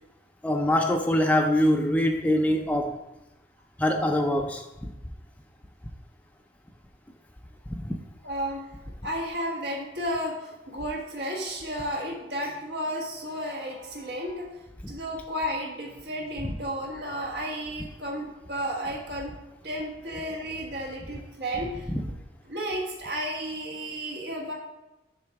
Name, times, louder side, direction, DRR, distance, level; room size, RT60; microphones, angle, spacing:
voice 1, 0.4-3.0 3.8-4.9 7.8-7.9 16.4-16.5 21.9-22.0, left 1 dB, 10° left, 3 dB, 0.4 m, -24 dB
voice 2, 8.2-8.7 9.0-14.5 14.9-19.3 19.6-22.2 22.5-24.5, equal, 75° right, -2 dB, 1.5 m, -33 dB
6.6 x 3.7 x 5.8 m, 0.98 s
head